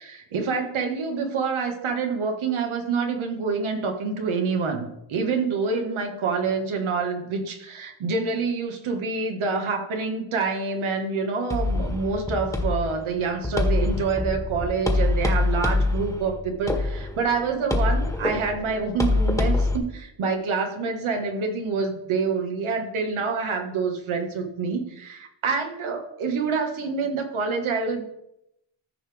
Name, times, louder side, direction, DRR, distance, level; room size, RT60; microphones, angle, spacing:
voice 1, 0.0-28.0, right 4 dB, 80° right, 4 dB, 1.6 m, -27 dB
sound 1, 11.5-19.8, left 2 dB, 5° left, 1.5 m, -25 dB
14.0 x 5.2 x 3.5 m, 0.82 s
cardioid pair, 80°, 47 cm